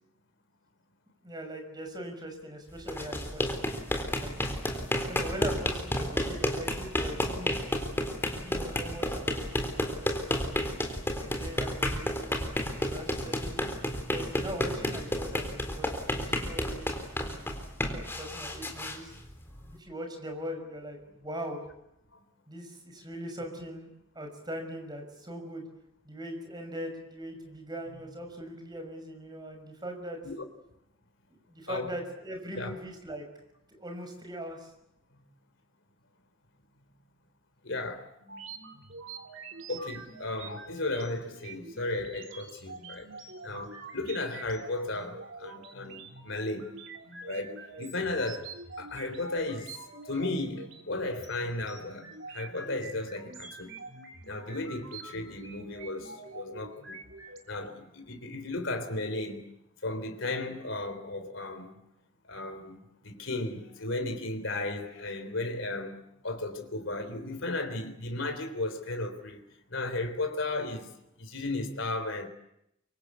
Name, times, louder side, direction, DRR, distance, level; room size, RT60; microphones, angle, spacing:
voice 1, 1.2-3.6 4.2-4.4 5.0-7.6 8.4-10.2 11.1-12.5 12.8-13.7 14.1-19.2 19.8-21.6 22.5-25.7 26.0-30.2 31.3-33.2 33.7-34.7, equal, 20° right, 6.0 m, -41 dB
sound 1, 2.8-19.7, left 1 dB, 10° left, 3.9 m, -32 dB
voice 2, 37.6-38.1 38.4-38.6 39.5-43.2 43.4-46.7 47.2-49.8 50.1-53.7 54.2-57.0 57.5-59.4 59.8-61.7 62.2-69.4 69.7-70.9 71.2-72.3, left 2 dB, 65° left, 3.7 m, -35 dB
sound 2, 38.2-57.4, right 3 dB, 65° right, 3.7 m, -46 dB
26.5 x 24.5 x 8.4 m
head